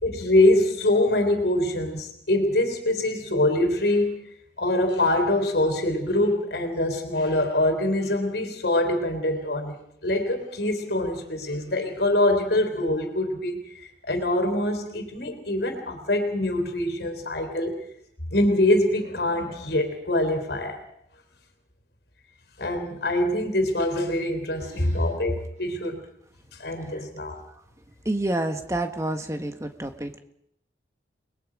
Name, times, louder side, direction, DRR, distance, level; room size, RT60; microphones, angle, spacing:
voice 1, 0.0-4.2 4.6-9.8 10.0-17.8 18.3-20.8 22.6-26.1 26.6-27.4, left 1 dB, 65° left, 6 dB, 3.6 m, -24 dB
sound 1, 23.7-24.2 24.5-25.2 25.6-25.7 26.3-26.4 27.2-27.6, right 2 dB, 40° right, 4.3 m, -49 dB
voice 2, 28.0-30.2, right 1 dB, 15° right, 7 dB, 1.6 m, -28 dB
30.0 x 21.0 x 5.1 m, 0.74 s
head